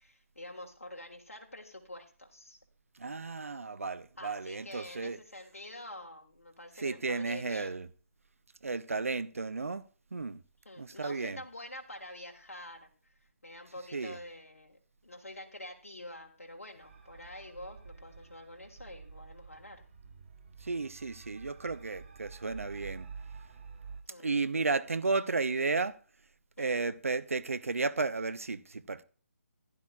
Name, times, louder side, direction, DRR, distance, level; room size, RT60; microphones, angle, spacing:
voice 1, 0.0-2.6 4.2-7.8 10.6-13.1 13.4-19.8 24.1-24.3 26.6-26.8, left 1 dB, 65° left, 1.5 m, -47 dB
voice 2, 3.0-5.2 6.8-7.9 8.6-9.8 10.1-10.4 10.8-11.4 13.9-14.2 20.6-23.1 24.2-26.0 26.6-29.0, right 3 dB, 65° right, 0.6 m, -33 dB
sound 1, 16.8-24.0, right 5 dB, 45° right, 1.5 m, -49 dB
15.5 x 10.5 x 2.3 m
figure-of-eight pair, 145°, 8 cm